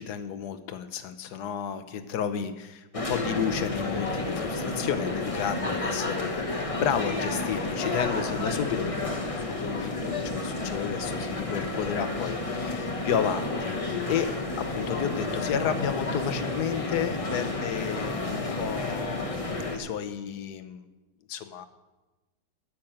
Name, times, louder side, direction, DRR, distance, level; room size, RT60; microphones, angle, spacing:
voice 1, 0.0-14.3 14.6-19.3 19.7-20.9 21.3-21.7, left 8 dB, 65° left, 9 dB, 1.3 m, -32 dB
sound 1, 2.9-19.8, left 2 dB, 25° left, 1.0 m, -31 dB
13.5 x 6.0 x 8.8 m, 1.1 s
omnidirectional pair, 2.0 m